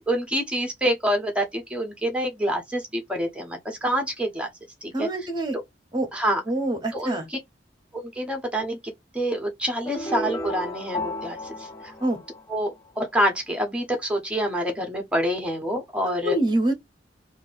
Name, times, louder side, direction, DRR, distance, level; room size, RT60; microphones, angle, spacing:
voice 1, 0.1-4.5 5.0-5.1 5.5-5.6 6.1-6.4 6.9-7.2 7.9-8.8 9.1-11.4 12.5-16.4, equal, 5° right, 1.1 m, -26 dB
voice 2, 4.9-5.6 5.9-6.1 6.5-7.3 12.0-12.2 16.0-16.7, right 1 dB, 25° right, 1.1 m, -25 dB
sound 1, 9.8-12.9, left 1 dB, 15° left, 0.5 m, -33 dB
3.1 x 2.6 x 3.8 m
head